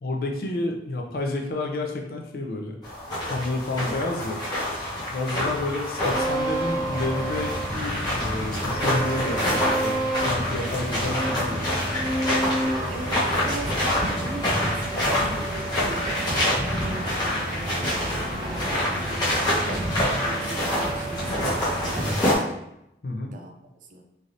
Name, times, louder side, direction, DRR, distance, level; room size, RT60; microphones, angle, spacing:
voice 1, 0.0-2.8 3.2-4.4 5.1-11.6 20.0-20.1 23.0-23.3, left 2 dB, 55° left, 2 dB, 0.4 m, -30 dB
sound 1, 2.8-22.3, left 1 dB, 25° left, 0.8 m, -27 dB
sound 2, 6.0-22.2, right 1 dB, 25° right, 0.7 m, -30 dB
voice 2, 12.9-16.4 16.6-19.8 20.2-22.5 23.3-24.0, right 2 dB, 45° right, 4 dB, 0.3 m, -40 dB
3.3 x 2.6 x 2.5 m, 0.82 s
head